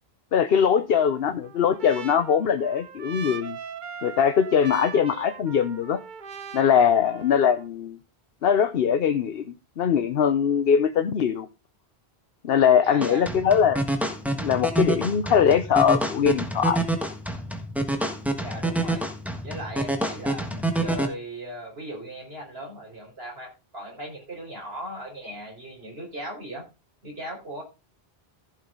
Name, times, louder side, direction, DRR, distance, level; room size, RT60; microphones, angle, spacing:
voice 1, 0.3-3.6 4.0-6.0 6.5-8.0 8.4-9.4 9.8-11.5 12.4-13.8 14.4-16.8, left 7 dB, 70° left, 1.0 m, -21 dB
Trumpet, 0.9-7.7, right 6 dB, 50° right, 0.9 m, -40 dB
voice 2, 12.8-13.6 18.4-19.0 19.4-26.6 27.0-27.6, equal, 70° right, 4.7 m, -38 dB
sound 1, 13.0-21.1, right 1 dB, ahead, 1.5 m, -27 dB
15.0 x 6.2 x 3.8 m
omnidirectional pair, 1.1 m